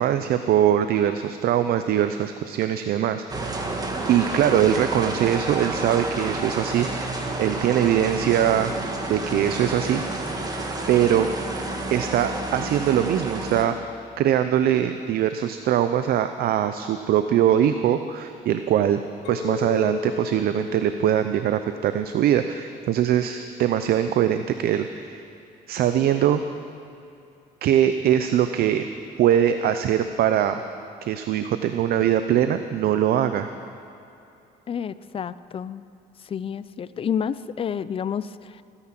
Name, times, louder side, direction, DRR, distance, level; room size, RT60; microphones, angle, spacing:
voice 1, 0.0-3.7 4.1-8.8 9.1-10.0 10.9-11.5 11.9-13.7 14.2-19.0 19.3-25.2 25.7-26.4 27.6-28.9 29.2-30.6 31.0-33.5, right 10 dB, 65° right, 9 dB, 0.6 m, -22 dB
sound 1, 3.3-13.7, right 2 dB, 20° right, 1.7 m, -30 dB
Chink clink, 19.2-23.6 24.1-24.4, left 5 dB, 90° left, 0.9 m, -36 dB
voice 2, 34.7-35.9 36.2-38.6, left 7 dB, 35° left, 16 dB, 0.5 m, -30 dB
21.0 x 10.0 x 6.0 m, 2.7 s
cardioid pair, 110°, 17 cm